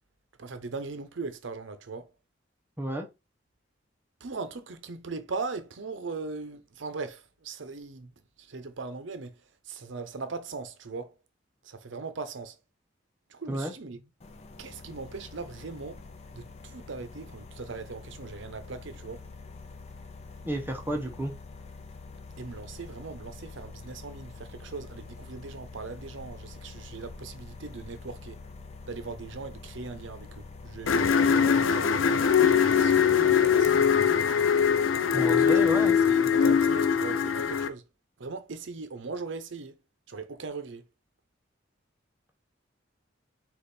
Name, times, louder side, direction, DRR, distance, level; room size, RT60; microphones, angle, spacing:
voice 1, 0.4-2.1 4.2-8.1 8.4-9.3 9.7-11.1 11.6-12.5 13.3-14.0 14.6-16.0 16.3-19.2 22.4-28.4 28.9-31.9 32.4-34.1 35.1-37.8 38.2-39.7 40.1-40.8, right 4 dB, 70° right, 0.7 m, -39 dB
sound 1, 14.2-31.1, left 3 dB, 35° left, 0.5 m, -46 dB
voice 2, 20.4-21.3 35.1-36.0, equal, 10° right, 0.8 m, -31 dB
sound 2, 30.9-37.7, left 7 dB, 85° left, 0.5 m, -22 dB
5.2 x 2.5 x 4.1 m
head